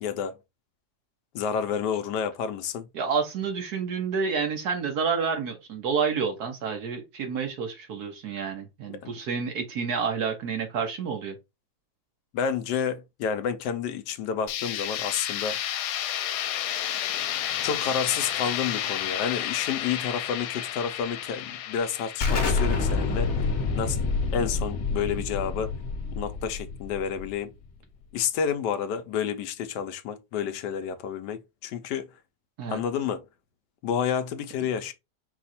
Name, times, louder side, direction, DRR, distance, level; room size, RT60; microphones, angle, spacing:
voice 1, 0.0-0.4 1.3-2.9 8.9-9.1 12.3-15.6 17.6-23.3 23.8-25.7 26.2-27.5 28.1-32.1 32.7-33.2 33.8-34.9, left 7 dB, 70° left, 1.1 m, -30 dB
voice 2, 2.9-11.4 32.6-32.8, right 6 dB, 60° right, 1.2 m, -29 dB
sound 1, 14.5-24.2, left 11 dB, 85° left, 1.4 m, -32 dB
Explosion, 22.2-27.6, left 4 dB, 45° left, 1.0 m, -27 dB
4.9 x 2.4 x 4.2 m
omnidirectional pair, 2.2 m